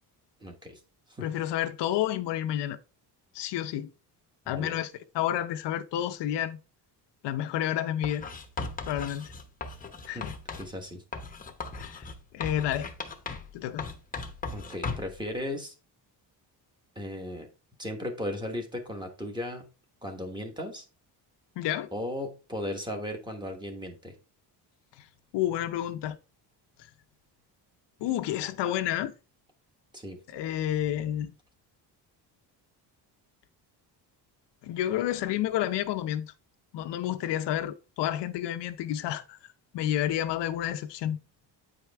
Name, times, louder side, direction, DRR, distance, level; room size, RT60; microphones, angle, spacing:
voice 1, 0.4-0.8 1.1-1.3 4.5-4.8 10.1-10.3 10.6-11.0 14.5-15.7 16.9-17.5 17.8-19.7 20.0-20.8 21.9-24.1 29.9-30.2, left 1 dB, 10° right, 1.2 m, -36 dB
voice 2, 1.2-2.8 3.3-3.9 4.5-6.6 7.2-8.2 8.9-9.3 10.1-10.3 11.8-12.1 12.3-12.9 13.5-13.9 21.6-21.9 25.0-25.1 25.3-26.2 28.0-29.1 30.3-31.3 34.6-36.3 36.7-39.4 39.7-41.2, left 12 dB, 75° left, 0.7 m, -30 dB
Writing, 8.0-10.7 11.1-13.5 13.8-15.2, left 4 dB, 20° left, 0.8 m, -38 dB
8.8 x 4.9 x 3.4 m
cardioid pair, 175°, 42 cm